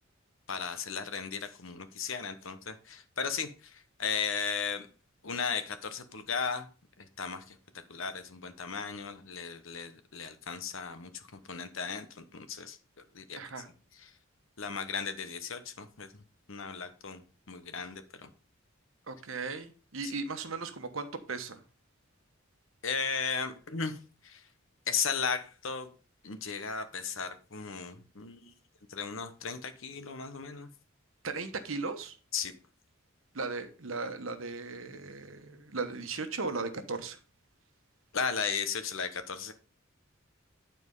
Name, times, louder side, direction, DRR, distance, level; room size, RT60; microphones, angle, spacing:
voice 1, 0.5-4.9 5.2-6.7 7.0-7.6 7.9-12.8 13.1-13.4 14.0-14.1 14.6-16.2 16.5-17.2 17.5-18.3 20.0-20.1 22.8-24.0 24.2-24.4 24.9-25.9 26.2-28.5 28.9-30.7 32.3-32.5 38.1-39.5, left 6 dB, 70° left, 1.1 m, -36 dB
voice 2, 13.4-13.7 19.1-21.6 31.2-32.2 33.3-37.2, right 4 dB, 70° right, 1.1 m, -37 dB
9.8 x 4.4 x 5.4 m
head